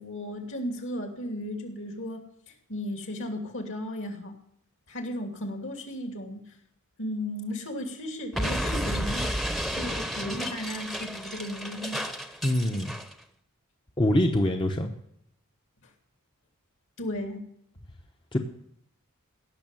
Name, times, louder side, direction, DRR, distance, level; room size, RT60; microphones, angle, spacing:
voice 1, 0.0-4.4 4.9-6.5 7.0-9.3 9.7-12.0 17.0-17.5, left 1 dB, 60° left, 5 dB, 2.9 m, -35 dB
Explosion, 8.3-13.1, equal, ahead, 1.0 m, -32 dB
voice 2, 12.4-12.9 14.0-14.9 18.3-18.4, left 1 dB, 20° left, 3 dB, 1.0 m, -24 dB
17.0 x 6.6 x 9.0 m, 0.72 s
head